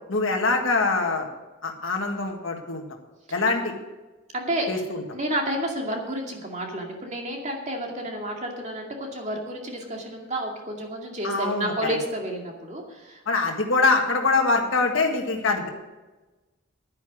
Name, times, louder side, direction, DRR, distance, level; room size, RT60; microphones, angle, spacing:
voice 1, 0.1-1.3 1.6-2.8 3.3-3.7 4.7-5.0 11.2-12.0 13.3-15.7, left 3 dB, 65° left, 1 dB, 1.7 m, -24 dB
voice 2, 4.3-4.8 5.1-13.2, right 1 dB, 35° right, 1 dB, 2.3 m, -30 dB
10.5 x 9.8 x 6.2 m, 1.1 s
head